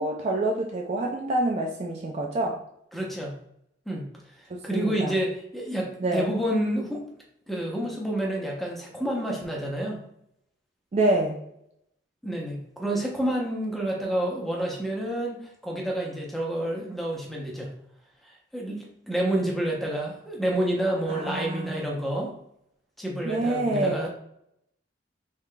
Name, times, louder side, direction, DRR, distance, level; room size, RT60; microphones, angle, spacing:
voice 1, 0.0-2.6 4.5-5.2 6.0-6.3 10.9-11.4 21.1-21.8 23.2-24.0, right 2 dB, 35° right, 1 dB, 0.3 m, -27 dB
voice 2, 2.9-3.3 3.9-4.0 4.6-7.0 7.5-10.0 12.2-17.7 18.2-22.3 23.0-24.1, right 1 dB, ahead, -2 dB, 0.7 m, -29 dB
3.6 x 3.6 x 2.2 m, 0.74 s
head